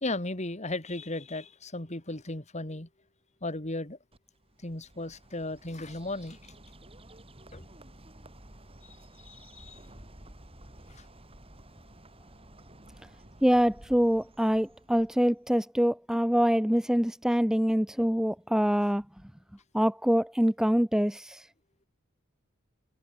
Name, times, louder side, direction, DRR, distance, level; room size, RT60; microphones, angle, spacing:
voice 1, 0.0-2.9 3.4-4.0 4.6-6.4 7.5-7.7 9.2-9.8 11.0-11.1, left 2 dB, 35° left, 2.7 m, -35 dB
Bird, 4.1-15.5, right 1 dB, 25° right, 5.5 m, -53 dB
voice 2, 13.4-19.0 19.7-21.5, equal, 5° right, 0.6 m, -25 dB
head